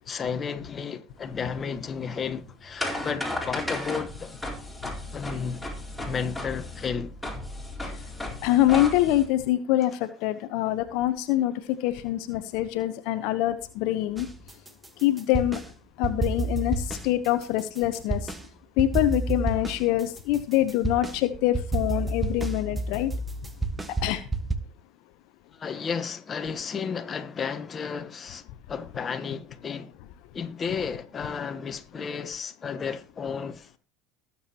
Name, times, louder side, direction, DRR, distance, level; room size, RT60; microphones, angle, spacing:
voice 1, 0.1-4.3 5.1-5.6 6.0-7.1 25.6-28.4 28.7-29.9 30.3-33.7, left 6 dB, 30° left, 1.2 m, -32 dB
sound 1, 1.2-9.3, left 1 dB, 5° left, 4.2 m, -35 dB
voice 2, 8.4-14.3 15.0-15.6 16.0-18.2 18.8-23.1 24.0-24.2, left 14 dB, 60° left, 0.9 m, -25 dB
sound 2, 14.2-15.7 16.0-18.4 18.8-24.5, right 2 dB, 15° right, 1.4 m, -30 dB
19.5 x 7.2 x 3.0 m
hypercardioid pair, 80°, 0 cm